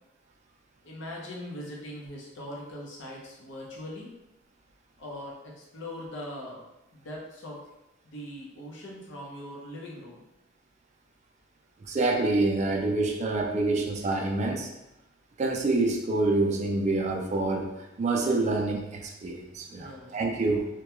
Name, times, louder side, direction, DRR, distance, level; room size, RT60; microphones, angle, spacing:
voice 1, 0.8-4.1 5.0-6.6 6.9-7.6 8.0-10.2 19.7-20.2, left 1 dB, 65° left, -3 dB, 0.7 m, -41 dB
voice 2, 11.9-14.7 15.4-17.7 18.0-20.7, right 2 dB, 35° right, 1 dB, 0.3 m, -27 dB
2.3 x 2.2 x 2.8 m, 0.92 s
head